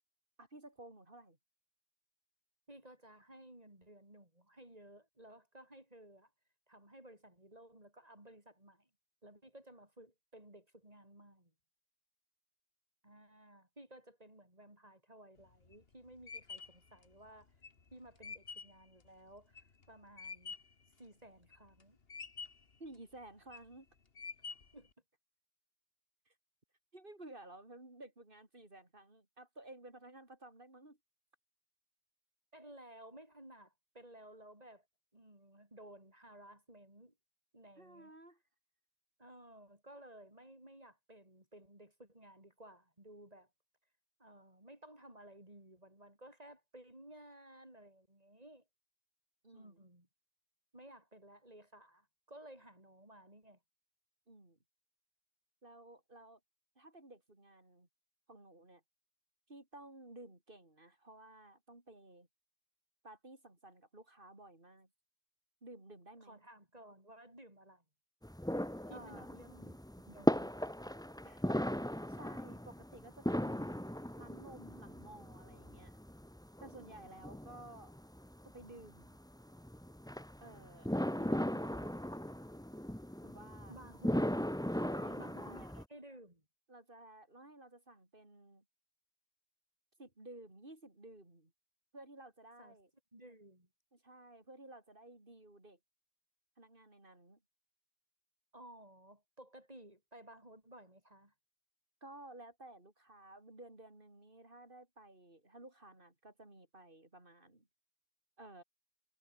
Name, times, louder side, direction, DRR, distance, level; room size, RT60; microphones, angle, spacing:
voice 1, 0.4-1.4 22.8-23.9 26.3-26.4 26.9-31.0 37.8-38.4 49.4-49.8 54.3-54.6 55.6-56.4 56.7-57.9 58.3-58.8 59.5-62.3 63.0-64.9 65.6-66.4 68.9-69.3 71.2-71.5 72.1-73.8 74.2-76.0 76.6-77.9 78.4-79.2 80.4-80.9 81.2-81.8 83.2-83.8 84.8-85.7 86.7-88.6 90.0-91.5 91.9-92.9 93.9-95.8 96.6-97.4 102.0-107.7 108.4-108.6, right 2 dB, 55° right, 5.0 m, -55 dB
voice 2, 2.7-6.3 6.7-8.9 9.2-11.5 13.0-17.5 17.9-20.5 21.0-22.0 24.7-24.9 32.5-34.9 35.1-37.2 37.5-38.2 39.2-43.5 44.2-48.6 49.5-50.1 50.7-53.6 66.2-67.8 68.9-69.8 70.1-70.5 83.7-84.3 85.2-86.5 92.6-92.8 93.1-93.7 98.5-101.3, right 1 dB, 40° right, 7.1 m, -56 dB
sound 1, 15.4-20.8 21.3-21.8 22.1-22.8 23.3-23.7 24.2-24.9, left 5 dB, 65° left, 1.9 m, -48 dB
sound 2, 68.2-85.8, equal, 5° left, 1.2 m, -38 dB
omnidirectional pair, 1.1 m